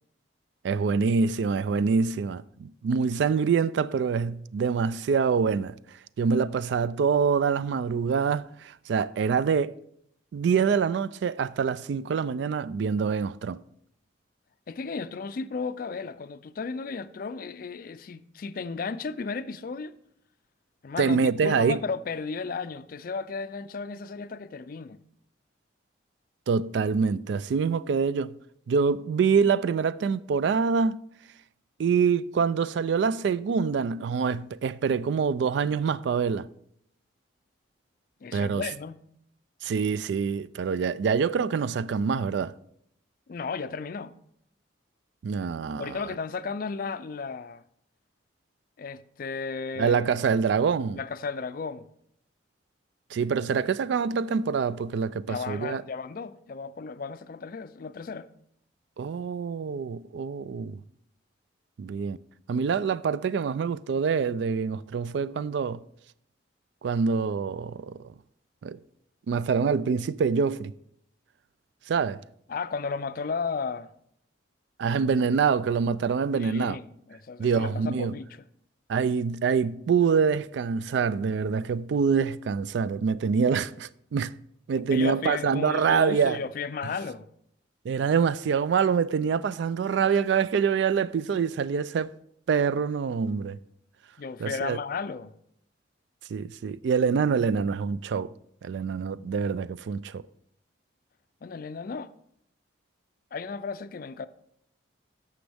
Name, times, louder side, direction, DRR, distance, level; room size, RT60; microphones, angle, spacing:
voice 1, 0.6-5.8 6.2-9.7 10.3-13.6 21.0-21.8 26.5-28.4 28.7-31.0 31.8-36.5 38.3-38.6 39.6-42.5 45.2-46.0 49.8-51.0 53.1-55.8 59.0-60.8 61.8-62.2 62.5-65.8 66.8-68.0 68.6-68.8 69.3-70.7 71.9-72.2 74.8-76.8 77.4-78.2 78.9-84.4 84.7-86.4 87.9-92.1 92.5-93.6 94.4-94.8 96.3-98.3 98.6-100.2, right 6 dB, 65° right, 0.3 m, -25 dB
voice 2, 14.7-19.9 20.8-25.0 38.2-39.0 43.3-44.1 45.8-47.6 48.8-50.2 50.9-51.8 55.3-58.3 72.5-73.9 76.3-78.4 84.9-87.3 94.2-95.3 101.4-102.1 103.3-104.3, left 5 dB, 45° left, 0.4 m, -34 dB
11.5 x 7.0 x 3.4 m
head